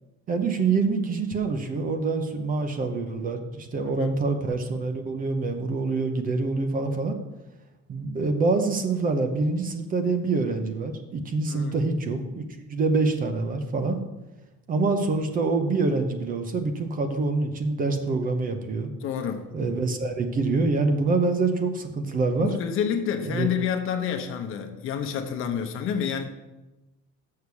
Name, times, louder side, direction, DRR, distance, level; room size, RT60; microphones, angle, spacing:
voice 1, 0.3-7.2 7.9-12.4 12.7-14.0 14.7-18.9 19.5-22.5 23.2-23.5, right 3 dB, 30° right, 7 dB, 0.7 m, -26 dB
voice 2, 3.8-4.1 11.4-11.8 19.0-19.5 22.4-26.3, left 8 dB, 45° left, 5 dB, 0.9 m, -29 dB
6.7 x 6.4 x 7.0 m, 1.0 s
cardioid pair, 170°, 29 cm